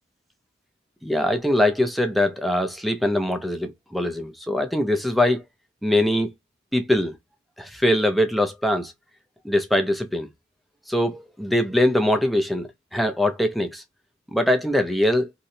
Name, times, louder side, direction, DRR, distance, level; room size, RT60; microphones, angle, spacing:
voice 1, 1.0-5.4 5.8-6.3 6.7-7.2 7.6-8.9 9.4-10.3 10.9-13.8 14.3-15.3, left 1 dB, ahead, 0.5 m, -22 dB
3.0 x 2.7 x 2.6 m
head